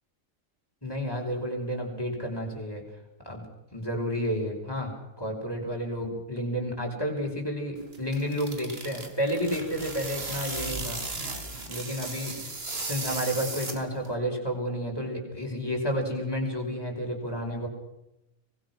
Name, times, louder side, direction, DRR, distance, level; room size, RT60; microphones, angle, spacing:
voice 1, 0.8-2.8 3.2-3.4 3.7-4.9 5.2-11.0 11.7-12.3 12.7-17.7, equal, 15° left, 0 dB, 5.6 m, -31 dB
sound 1, 7.8-14.1, right 3 dB, 45° right, 2.5 m, -36 dB
24.5 x 20.5 x 6.2 m, 0.91 s
omnidirectional pair, 1.5 m